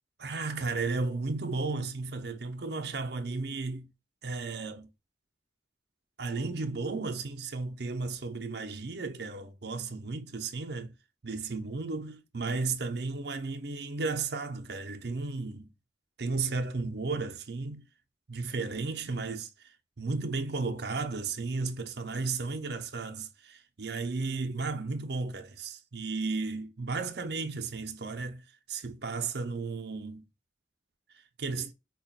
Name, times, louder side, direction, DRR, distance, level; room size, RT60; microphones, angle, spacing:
voice 1, 0.2-3.9 4.2-4.9 6.2-10.9 11.2-15.7 16.2-17.8 18.3-30.2 31.4-31.7, right 3 dB, 65° right, 0.7 m, -34 dB
5.5 x 2.2 x 2.4 m
head